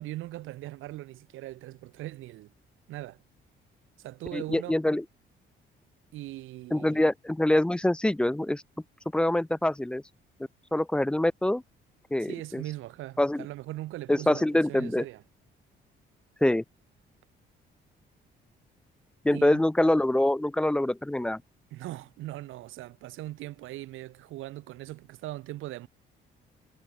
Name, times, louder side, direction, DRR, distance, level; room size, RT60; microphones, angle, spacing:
voice 1, 0.0-2.5 2.9-3.2 4.0-4.8 6.1-7.0 12.3-15.2 19.3-19.6 21.7-25.9, right 16 dB, 90° right, 1.6 m, -40 dB
voice 2, 4.3-5.0 6.7-8.6 9.1-10.0 10.7-11.6 12.1-12.6 13.2-13.5 14.1-15.1 16.4-16.6 19.2-21.4, left 1 dB, 5° left, 0.3 m, -25 dB
cardioid pair, 90°, 20 cm